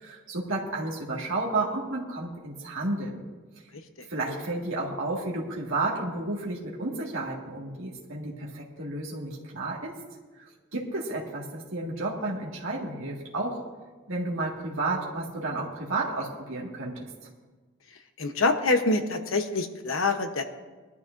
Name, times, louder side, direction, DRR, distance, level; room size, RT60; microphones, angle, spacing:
voice 1, 0.0-3.2 4.1-9.9 10.7-13.6 14.1-17.1, right 2 dB, 75° right, -4 dB, 2.0 m, -32 dB
voice 2, 18.2-20.4, left 3 dB, 80° left, 7 dB, 1.0 m, -25 dB
20.5 x 12.0 x 2.6 m, 1.3 s
head